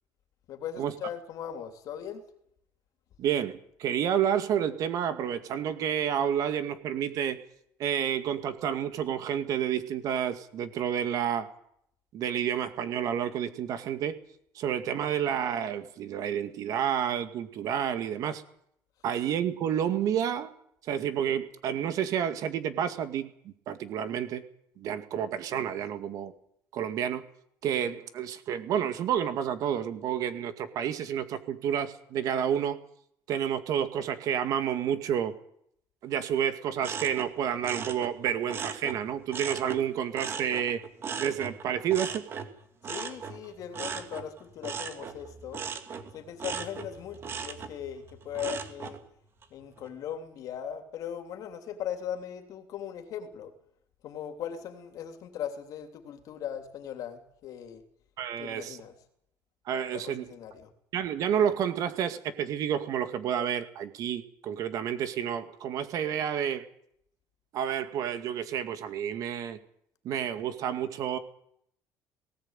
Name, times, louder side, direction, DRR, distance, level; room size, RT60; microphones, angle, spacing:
voice 1, 0.5-2.2 42.8-45.6 46.1-49.0 49.5-53.5 54.0-57.8 58.4-58.9 59.9-60.7, left 9 dB, 55° left, 6 dB, 3.1 m, -39 dB
voice 2, 3.2-7.4 7.8-11.5 12.1-14.2 14.5-18.4 19.0-20.5 20.8-24.4 24.8-26.3 26.7-27.2 27.6-32.8 33.3-35.3 36.0-40.8 41.2-42.2 58.2-58.8 59.7-60.3 60.9-66.7 67.5-69.6 70.0-71.2, right 9 dB, 55° right, 10 dB, 2.1 m, -30 dB
sound 1, 36.8-39.8 40.1-49.0 49.4-49.9, right 6 dB, 35° right, 2.3 m, -38 dB
19.0 x 18.0 x 9.0 m, 0.70 s
cardioid pair, 140°, 7 cm